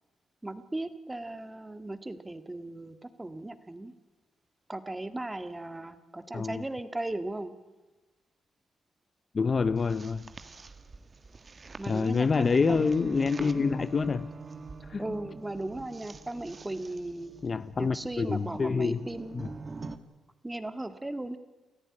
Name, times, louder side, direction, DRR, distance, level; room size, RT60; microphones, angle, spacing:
voice 1, 0.4-3.9 4.7-7.5 11.8-12.9 15.0-17.3 17.8-19.5 20.4-21.4, right 2 dB, 15° right, 1.8 m, -37 dB
voice 2, 6.3-6.6 9.3-10.3 11.9-14.3 14.9-15.2 17.4-19.1 19.3-19.5, left 5 dB, 35° left, 0.7 m, -27 dB
sound 1, 9.8-20.0, right 4 dB, 30° right, 1.6 m, -44 dB
28.5 x 14.5 x 9.8 m
cardioid pair, 90°, 0 cm